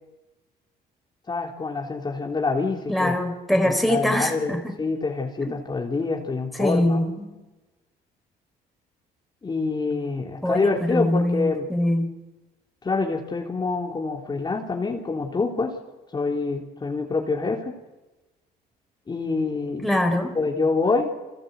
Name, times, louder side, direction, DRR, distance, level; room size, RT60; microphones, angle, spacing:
voice 1, 1.3-3.2 3.6-7.0 9.4-11.7 12.8-15.8 16.1-17.7 19.1-19.9 20.3-21.1, left 3 dB, 25° left, 0 dB, 3.5 m, -26 dB
voice 2, 2.9-4.6 5.4-5.5 6.5-7.3 10.4-12.1 19.8-20.4, left 1 dB, ahead, 4 dB, 4.6 m, -23 dB
29.5 x 24.0 x 8.3 m, 1.1 s
cardioid pair, 110°, 17 cm